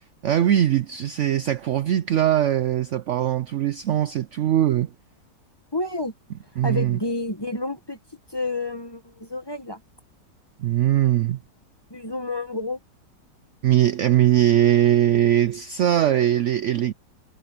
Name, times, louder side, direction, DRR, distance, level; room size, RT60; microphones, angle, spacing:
voice 1, 0.2-4.9 6.6-7.0 10.6-11.4 13.6-16.9, right 11 dB, 75° right, 0.6 m, -21 dB
voice 2, 5.7-6.1 6.6-8.0 8.3-9.8 11.9-12.8, left 2 dB, 15° left, 1.1 m, -29 dB
omnidirectional pair, 1.9 m